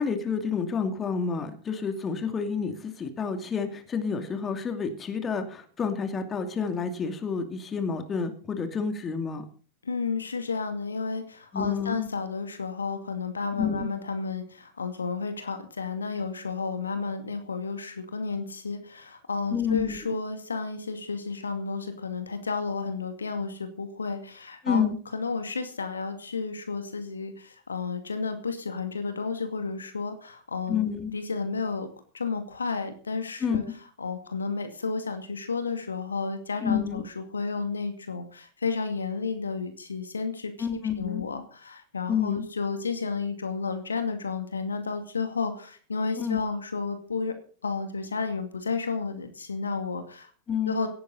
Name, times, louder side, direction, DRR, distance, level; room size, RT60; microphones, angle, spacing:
voice 1, 0.0-9.4 11.5-12.1 13.6-13.9 19.5-20.2 24.6-25.0 30.7-31.1 33.4-33.7 36.6-37.0 40.6-41.3 42.1-42.5 46.2-46.4 50.5-50.8, left 6 dB, 20° left, 7 dB, 2.6 m, -29 dB
voice 2, 9.8-24.8 25.1-31.9 32.1-33.6 34.0-40.7 41.0-47.4 47.6-50.3 50.7-50.9, left 4 dB, 75° left, 7 dB, 2.3 m, -32 dB
17.0 x 14.0 x 4.1 m, 0.42 s
figure-of-eight pair, 90°, 0 cm